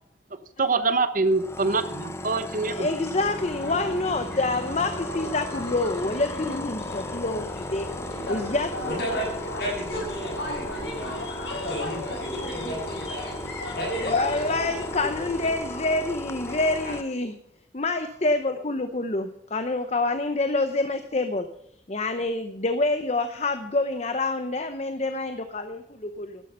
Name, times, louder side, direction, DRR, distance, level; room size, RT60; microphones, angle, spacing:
voice 1, 0.6-2.9, right 3 dB, 45° right, 11 dB, 0.9 m, -24 dB
sound 1, 1.3-17.0, left 1 dB, 15° left, 0.5 m, -36 dB
voice 2, 2.6-8.7 14.0-17.3 17.7-21.6 21.9-26.4, left 2 dB, 35° left, 8 dB, 0.8 m, -27 dB
sound 2, 3.1-15.6, equal, 85° left, 4.2 m, -35 dB
voice 3, 8.8-9.3 9.6-10.7 10.9-13.3 13.7-14.6 16.8-17.0, equal, 55° left, -1 dB, 7.2 m, -34 dB
12.0 x 11.0 x 5.6 m, 0.72 s
head